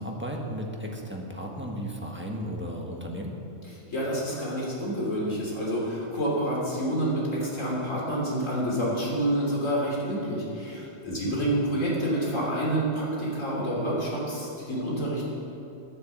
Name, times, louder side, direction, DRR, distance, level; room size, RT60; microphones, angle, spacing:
voice 1, 0.0-3.4 11.1-11.4, equal, 10° right, -1 dB, 1.3 m, -35 dB
voice 2, 3.9-15.3, right 1 dB, 80° left, -5 dB, 3.5 m, -28 dB
10.5 x 9.5 x 7.3 m, 2.8 s
omnidirectional pair, 1.3 m